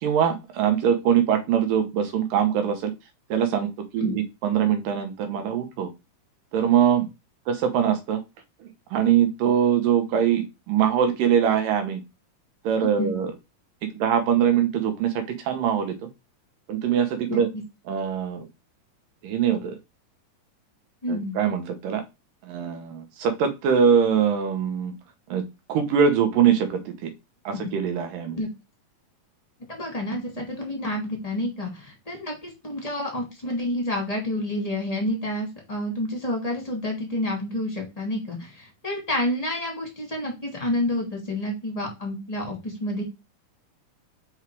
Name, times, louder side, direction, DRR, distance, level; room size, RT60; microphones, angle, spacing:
voice 1, 0.0-2.9 3.3-5.9 6.5-7.1 7.5-8.2 8.6-12.0 12.6-13.3 13.8-16.0 16.7-17.5 17.9-18.5 19.2-19.8 21.1-22.0 22.4-24.9 25.3-25.4 25.7-27.1 27.5-28.4, right 8 dB, 85° right, 7 dB, 2.8 m, -23 dB
voice 2, 17.3-17.6 21.0-21.4 28.3-28.5 29.7-43.0, left 1 dB, 15° left, 0 dB, 1.5 m, -29 dB
5.6 x 4.7 x 4.5 m, 0.25 s
omnidirectional pair, 3.8 m